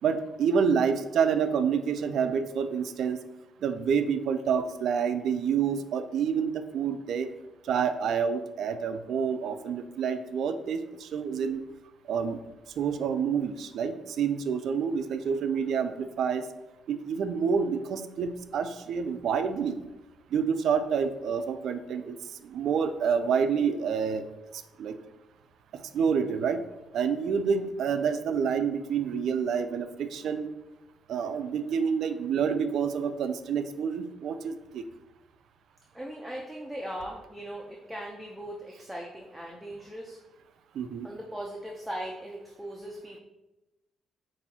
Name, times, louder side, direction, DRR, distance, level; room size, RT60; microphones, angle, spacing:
voice 1, 0.0-3.2 3.6-7.3 7.6-11.6 12.1-12.4 12.8-16.5 16.9-19.8 20.3-22.2 22.4-24.2 24.8-25.0 25.7-26.6 26.9-30.5 31.1-34.8 40.7-41.1, right 6 dB, 70° right, 9 dB, 0.3 m, -28 dB
voice 2, 35.9-40.2 41.0-43.2, right 1 dB, 5° right, -2 dB, 0.5 m, -39 dB
5.4 x 2.6 x 2.8 m, 1.0 s
cardioid pair, 90°, 0 cm